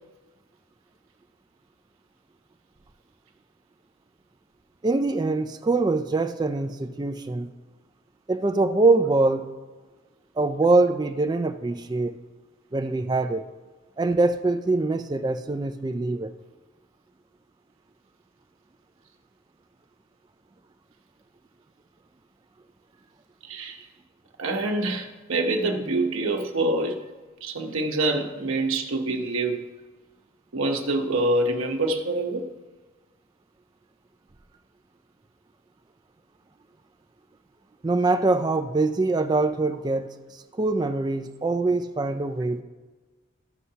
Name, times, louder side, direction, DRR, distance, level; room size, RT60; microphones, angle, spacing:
voice 1, 4.8-7.5 8.3-9.5 10.4-12.2 12.7-13.5 14.0-16.3 37.8-40.1 40.6-42.6, right 3 dB, 20° right, 0.3 m, -23 dB
voice 2, 23.5-23.9 24.4-27.0 27.4-29.6 30.5-32.5, right 2 dB, 80° right, 0.9 m, -26 dB
14.0 x 5.6 x 2.8 m
head